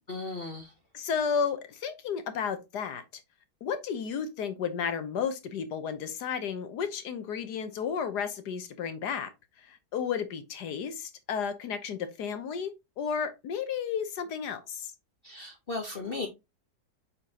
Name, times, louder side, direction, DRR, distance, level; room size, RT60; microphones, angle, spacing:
voice 1, 0.1-0.7 15.2-16.3, left 3 dB, 40° left, 0.9 m, -36 dB
voice 2, 0.9-3.2 3.6-9.3 9.6-14.9, left 7 dB, 70° left, 1.4 m, -33 dB
8.2 x 4.1 x 2.8 m
omnidirectional pair, 1.8 m